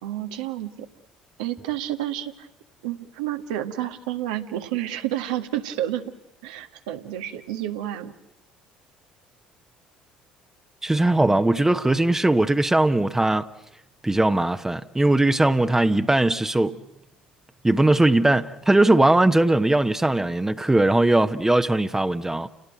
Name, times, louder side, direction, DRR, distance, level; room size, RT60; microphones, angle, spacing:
voice 1, 0.0-0.9 1.4-2.5 2.8-6.0 6.4-8.1, right 12 dB, 75° right, 1.6 m, -30 dB
voice 2, 10.8-13.5 14.0-16.8 17.6-22.5, right 2 dB, 10° right, 1.0 m, -20 dB
30.0 x 18.5 x 9.1 m
hypercardioid pair, 60°, 4 cm